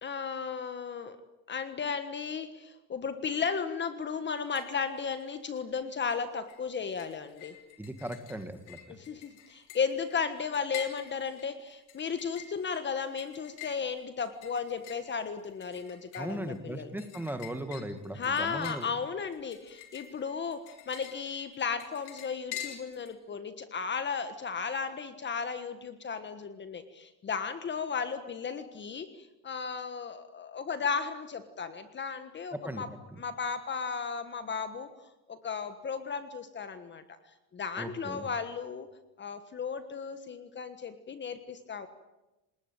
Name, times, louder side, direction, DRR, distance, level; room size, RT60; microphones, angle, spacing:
voice 1, 0.0-1.2 1.5-7.6 8.9-16.9 18.1-32.9 33.2-34.9 35.3-37.2 37.5-38.9 39.2-41.9, left 6 dB, 25° left, 10 dB, 1.5 m, -35 dB
sound 1, 4.3-4.8 5.1-5.8 6.1-23.1, left 11 dB, 75° left, 5.3 m, -47 dB
voice 2, 7.8-9.0 16.2-18.9 32.5-32.8 37.8-38.3, right 1 dB, 5° right, 9 dB, 1.9 m, -38 dB
27.5 x 20.0 x 9.0 m, 1.0 s
cardioid pair, 155°, 44 cm